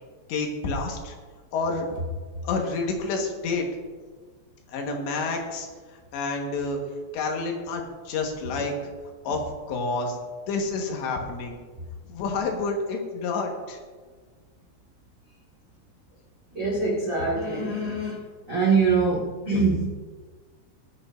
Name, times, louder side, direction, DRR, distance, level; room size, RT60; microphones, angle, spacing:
voice 1, 0.3-1.1 1.5-1.9 2.4-3.7 4.7-5.7 6.1-6.8 7.1-8.7 9.3-9.4 9.7-10.2 10.5-11.6 12.1-13.8, left 3 dB, 75° left, 1 dB, 3.7 m, -28 dB
voice 2, 16.5-18.2 18.5-20.0, right 4 dB, 50° right, -4 dB, 0.9 m, -24 dB
22.5 x 8.7 x 2.7 m, 1.5 s
omnidirectional pair, 5.2 m